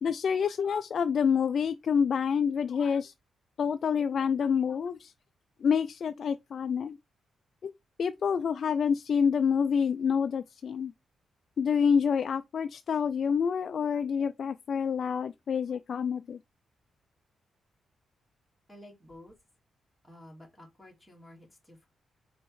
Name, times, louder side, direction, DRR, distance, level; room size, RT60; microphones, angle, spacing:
voice 1, 0.0-3.1 3.6-5.1 5.6-7.0 7.6-7.7 8.0-10.9 11.6-16.4, left 6 dB, 50° left, 0.4 m, -27 dB
voice 2, 18.7-19.4 20.0-21.9, left 1 dB, ahead, 2.3 m, -52 dB
5.3 x 4.2 x 4.6 m
wide cardioid pair, 165°, 0 cm